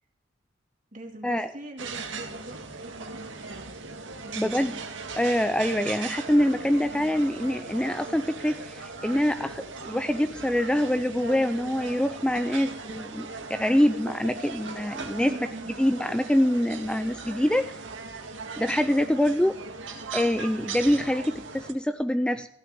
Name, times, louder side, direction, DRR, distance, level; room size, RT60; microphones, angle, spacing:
voice 1, 0.9-3.7 4.2-4.7 15.2-15.8, right 1 dB, 40° right, 2 dB, 2.5 m, -43 dB
sound 1, 1.8-21.7, right 4 dB, 75° right, 1.8 m, -39 dB
voice 2, 4.4-4.7 5.2-15.4 15.8-17.8 18.6-19.6 20.1-22.5, equal, 5° left, 10 dB, 0.4 m, -25 dB
15.5 x 6.2 x 9.1 m, 0.76 s
head